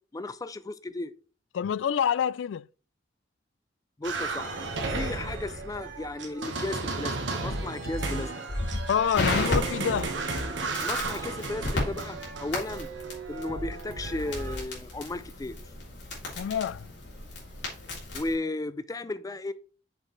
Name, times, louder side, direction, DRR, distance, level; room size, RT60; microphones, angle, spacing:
voice 1, 0.1-1.1 4.0-4.5 4.9-7.2 7.4-8.3 10.8-12.9 13.3-15.6 18.1-19.5, left 2 dB, 20° left, 0.4 m, -34 dB
voice 2, 1.5-2.6 8.9-10.1 16.4-16.9, left 8 dB, 90° left, 0.3 m, -27 dB
sound 1, 4.0-14.6, right 3 dB, 90° right, 1.4 m, -34 dB
Crackle, 8.5-18.3, left 2 dB, 70° left, 3.2 m, -34 dB
6.7 x 5.7 x 3.2 m
head